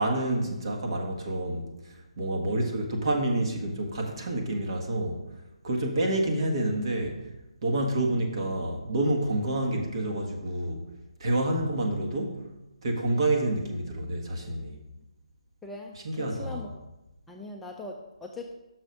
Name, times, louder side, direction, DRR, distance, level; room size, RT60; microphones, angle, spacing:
voice 1, 0.0-5.2 5.6-7.3 7.6-10.8 11.2-12.5 12.8-14.8 16.0-16.6, right 1 dB, 50° right, 1 dB, 1.4 m, -28 dB
voice 2, 15.6-16.7 17.3-18.5, left 2 dB, 5° left, -1 dB, 0.4 m, -41 dB
6.2 x 5.4 x 5.3 m, 0.97 s
figure-of-eight pair, 145°, 3 cm